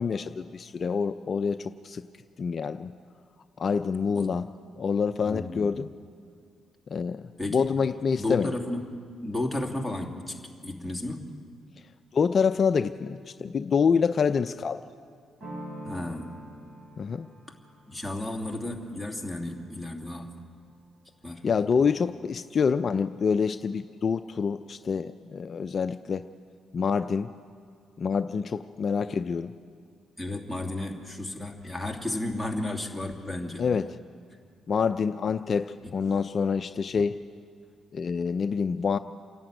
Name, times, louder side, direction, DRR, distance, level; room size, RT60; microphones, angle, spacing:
voice 1, 0.0-2.0 2.4-2.9 3.6-4.5 4.8-5.9 6.9-7.2 7.5-8.5 12.1-14.8 17.0-17.3 21.4-26.3 26.7-27.3 28.0-29.5 33.6-33.9 34.7-37.2 37.9-39.0, left 6 dB, 45° left, 9 dB, 0.5 m, -26 dB
voice 2, 5.3-5.7 7.4-7.7 8.1-8.8 9.2-10.4 10.6-11.2 15.8-16.3 17.9-20.4 21.2-21.5 21.8-21.9 30.2-33.6, left 1 dB, 5° right, 2 dB, 2.7 m, -33 dB
sound 1, 15.4-21.0, equal, 45° right, 5.5 m, -46 dB
28.0 x 11.5 x 9.0 m, 2.2 s
cardioid pair, 90°, 0 cm